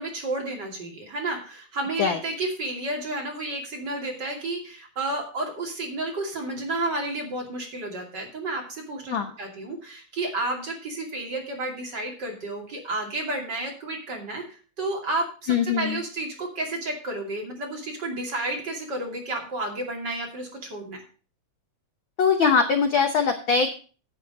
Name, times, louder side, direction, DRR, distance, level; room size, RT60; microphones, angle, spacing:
voice 1, 0.0-21.0, right 2 dB, 35° right, 0 dB, 3.1 m, -31 dB
voice 2, 15.5-16.0 22.2-23.7, left 6 dB, 60° left, 6 dB, 1.3 m, -22 dB
10.0 x 8.3 x 5.2 m, 0.38 s
omnidirectional pair, 3.3 m